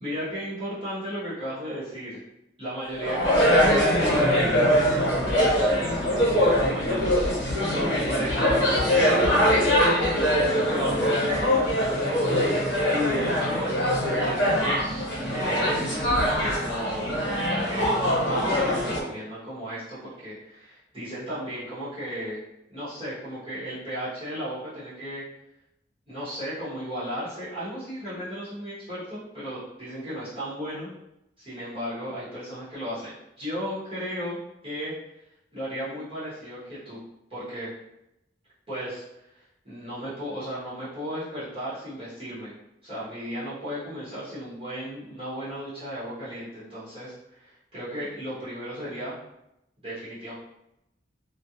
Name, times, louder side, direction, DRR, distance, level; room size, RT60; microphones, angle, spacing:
voice 1, 0.0-2.2 2.6-7.3 7.6-8.5 8.9-13.8 14.2-15.1 15.3-15.9 16.5-17.1 17.6-22.4 22.7-25.2 26.1-30.9 31.4-34.9 35.5-37.0 37.3-37.7 38.7-39.0 39.6-42.5 42.8-49.2 49.8-50.3, equal, 30° right, -12 dB, 0.9 m, -35 dB
sound 1, 3.0-19.0, equal, 80° left, 0.9 m, -23 dB
2.3 x 2.1 x 2.8 m, 0.86 s
head